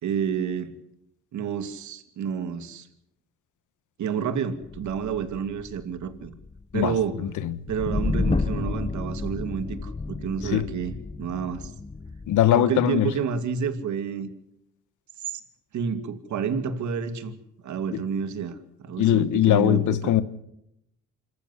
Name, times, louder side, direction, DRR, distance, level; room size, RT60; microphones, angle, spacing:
voice 1, 0.0-0.8 1.3-2.9 4.0-6.3 6.7-7.2 7.7-11.7 12.5-14.3 15.2-15.4 15.7-17.3 17.6-20.1, right 7 dB, 70° right, 2.5 m, -29 dB
sound 1, 4.6-12.5, left 3 dB, 20° left, 1.1 m, -31 dB
voice 2, 12.3-13.1 19.0-20.2, left 12 dB, 80° left, 1.4 m, -20 dB
26.5 x 14.5 x 9.7 m
cardioid pair, 90°, 30 cm